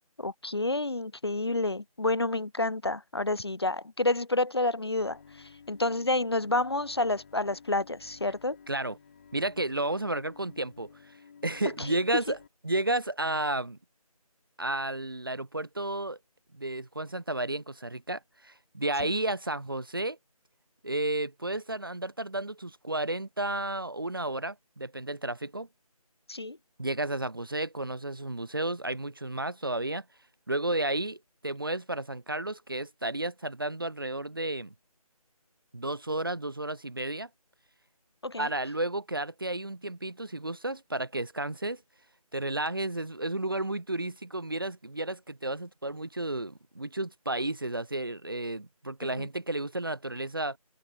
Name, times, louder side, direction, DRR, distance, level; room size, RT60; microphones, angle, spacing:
voice 1, 0.2-8.6 11.8-12.0 19.0-19.1 26.3-26.6 38.2-38.5 49.2-49.3, left 2 dB, 45° left, 0.5 m, -29 dB
Bowed string instrument, 5.0-12.5, left 6 dB, 25° left, 3.5 m, -53 dB
voice 2, 8.7-9.0 9.3-10.9 11.4-12.4 12.6-13.8 14.6-16.2 16.5-20.2 20.8-25.7 26.8-30.0 30.5-34.7 35.7-37.3 38.4-41.8 42.3-50.6, right 2 dB, 35° right, 0.5 m, -32 dB
figure-of-eight pair, 160°, 19 cm